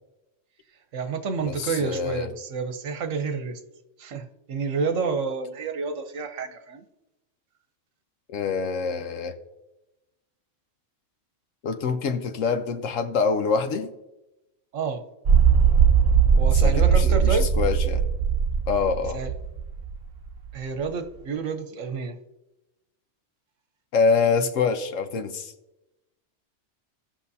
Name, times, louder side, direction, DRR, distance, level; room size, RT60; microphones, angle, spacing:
voice 1, 0.9-3.6 4.0-6.8 14.7-15.0 16.3-17.5 19.1-19.3 20.5-22.2, right 5 dB, 80° right, 8 dB, 1.3 m, -29 dB
voice 2, 1.5-2.3 8.3-9.3 11.6-13.9 16.5-18.0 18.7-19.2 23.9-25.5, left 5 dB, 85° left, 8 dB, 1.2 m, -25 dB
sound 1, 15.3-20.0 20.2-20.3, right 7 dB, 60° right, 1.1 m, -20 dB
16.5 x 6.0 x 2.7 m, 0.97 s
omnidirectional pair, 1.3 m